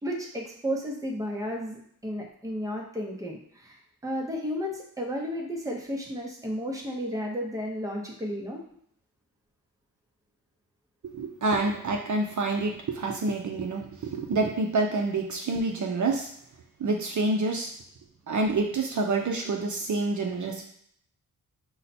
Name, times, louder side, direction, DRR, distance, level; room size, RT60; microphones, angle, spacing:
voice 1, 0.0-8.6, equal, 10° right, -1 dB, 0.7 m, -33 dB
voice 2, 11.1-16.3 16.8-17.7 18.3-20.6, right 3 dB, 55° right, 2 dB, 0.6 m, -27 dB
5.5 x 2.2 x 4.1 m, 0.67 s
wide cardioid pair, 160°, 37 cm